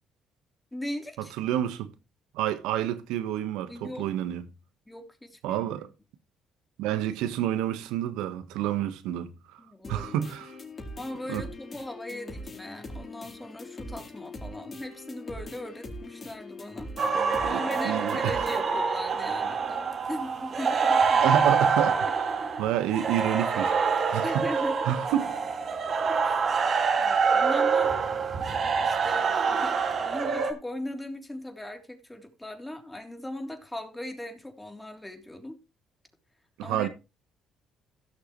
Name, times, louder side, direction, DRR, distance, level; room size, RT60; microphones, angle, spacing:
voice 1, 0.7-1.3 3.7-4.1 4.9-5.6 9.6-10.2 11.0-16.9 17.4-21.4 24.2-25.0 25.9-26.5 27.0-27.9 28.4-35.6 36.6-36.9, left 1 dB, 10° left, 3.3 m, -39 dB
voice 2, 1.4-1.9 2.3-4.5 5.4-5.9 6.8-9.6 9.9-10.6 11.3-11.5 17.4-18.5 21.2-22.1 22.6-24.4 24.8-25.3 26.9-27.0 36.6-36.9, right 11 dB, 80° right, 1.3 m, -29 dB
sound 1, 9.8-18.8, left 2 dB, 40° left, 3.9 m, -42 dB
sound 2, 17.0-30.5, right 5 dB, 50° right, 2.2 m, -26 dB
16.5 x 6.7 x 3.2 m
supercardioid pair, 65°, 0 cm